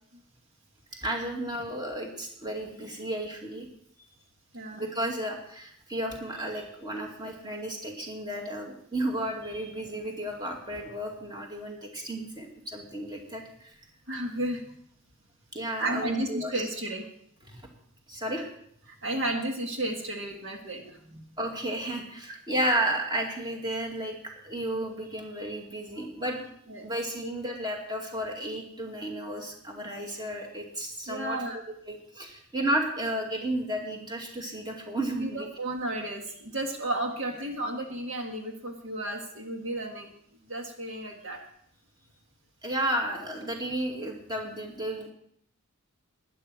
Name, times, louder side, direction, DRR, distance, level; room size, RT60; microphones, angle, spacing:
voice 1, 1.0-3.7 4.7-13.7 15.5-16.5 17.5-17.6 18.1-18.4 21.4-26.5 26.8-31.6 31.9-35.5 42.6-45.1, right 1 dB, 20° right, 1 dB, 2.2 m, -33 dB
voice 2, 4.5-4.8 14.1-14.7 15.8-17.1 18.3-18.4 18.9-21.2 22.3-22.4 25.9-26.1 26.7-26.9 31.1-31.6 35.2-40.1 40.4-41.4, right 1 dB, 60° right, 2 dB, 1.6 m, -33 dB
12.0 x 10.0 x 6.3 m, 0.70 s
head